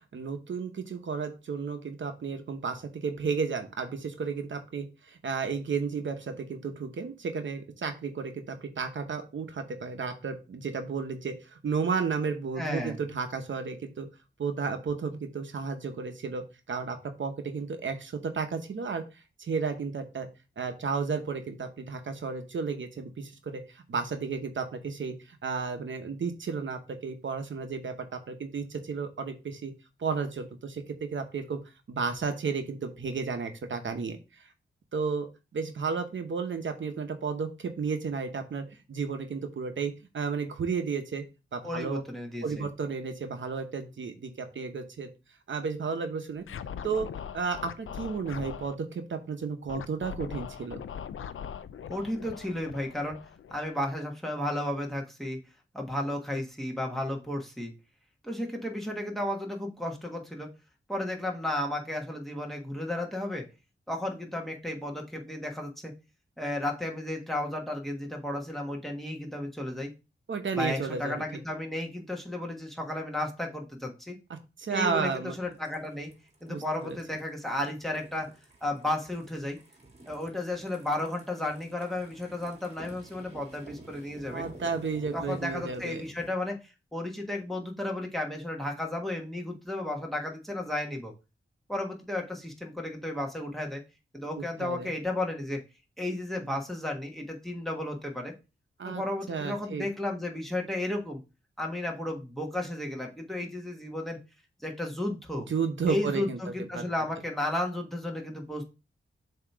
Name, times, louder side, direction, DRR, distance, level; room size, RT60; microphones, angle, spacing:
voice 1, 0.1-14.1 14.4-19.0 19.4-20.3 20.6-29.7 30.0-31.6 31.9-34.5 34.9-41.2 41.5-42.0 42.4-45.1 45.5-46.5 46.8-47.1 47.3-50.8 70.3-71.2 74.3-75.3 76.5-77.0 84.3-86.0 94.4-94.9 98.8-99.0 99.3-99.9 105.5-106.4 106.7-106.8, right 5 dB, 70° right, 6 dB, 0.9 m, -33 dB
voice 2, 12.6-13.0 41.6-42.7 51.9-53.2 53.5-55.4 55.7-57.7 58.2-60.5 60.9-63.5 63.9-65.9 66.4-69.9 70.5-74.2 74.7-76.1 76.4-78.3 78.6-79.6 80.1-84.4 85.1-91.1 91.7-93.8 94.1-95.6 96.0-98.3 98.8-101.2 101.6-104.2 104.6-105.5 105.9-108.6, left 1 dB, ahead, 1 dB, 1.4 m, -33 dB
Scratching (performance technique), 46.4-48.8 49.7-54.0, left 8 dB, 90° left, 0.5 m, -41 dB
sound 1, 75.4-86.3, right 2 dB, 30° right, 1.6 m, -51 dB
7.3 x 2.9 x 4.6 m, 0.29 s
wide cardioid pair, 110°, 20 cm